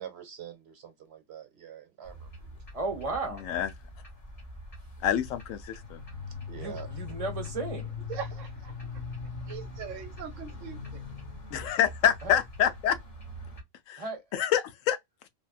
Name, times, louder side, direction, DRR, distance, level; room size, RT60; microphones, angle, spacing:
voice 1, 0.0-2.3 6.5-6.9, right 9 dB, 55° right, 1.1 m, -44 dB
sound 1, 2.0-13.6, left 3 dB, 30° left, 1.1 m, -41 dB
voice 2, 2.7-3.5 6.5-7.9 12.2-12.4 14.0-14.2, right 3 dB, 30° right, 0.9 m, -34 dB
voice 3, 5.0-6.0 11.5-13.0 13.9-14.0 14.3-15.0, left 9 dB, 80° left, 1.0 m, -26 dB
voice 4, 8.1-8.7 9.5-11.0, right 7 dB, 75° right, 1.0 m, -41 dB
3.5 x 2.2 x 2.3 m
omnidirectional pair, 1.4 m